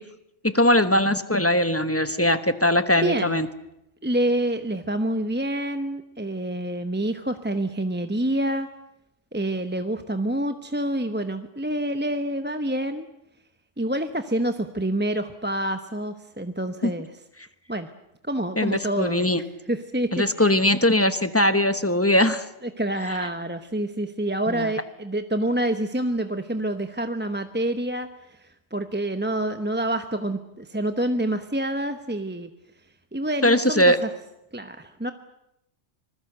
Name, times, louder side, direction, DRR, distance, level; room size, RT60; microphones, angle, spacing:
voice 1, 0.4-3.5 16.8-16.9 18.6-19.4 20.1-22.5 23.1-23.2 24.5-24.7 33.4-34.0, left 1 dB, 10° left, 11 dB, 1.0 m, -20 dB
voice 2, 3.0-3.4 4.0-8.7 9.3-13.1 13.8-17.1 17.7-17.9 18.3-19.3 19.7-20.6 22.6-32.5 33.1-34.1 34.5-35.1, right 1 dB, 10° right, 8 dB, 0.8 m, -27 dB
26.0 x 20.5 x 7.9 m, 0.84 s
omnidirectional pair, 1.3 m